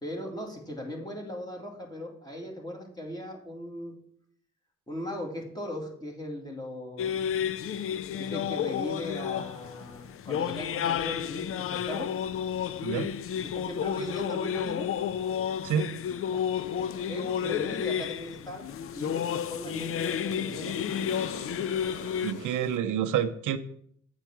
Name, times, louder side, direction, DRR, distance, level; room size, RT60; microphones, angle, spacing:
voice 1, 0.0-4.0 4.9-7.2 8.2-12.1 13.4-14.9 16.3-16.4 17.1-18.7 18.9-20.8, left 1 dB, 15° left, 0 dB, 2.3 m, -38 dB
sound 1, 7.0-22.3, left 8 dB, 45° left, 0.4 m, -31 dB
sound 2, 16.6-22.8, left 5 dB, 85° left, 1.0 m, -44 dB
voice 2, 22.2-23.6, right 9 dB, 90° right, 9 dB, 0.6 m, -28 dB
8.6 x 4.5 x 5.9 m, 0.65 s
cardioid pair, 90°, 30 cm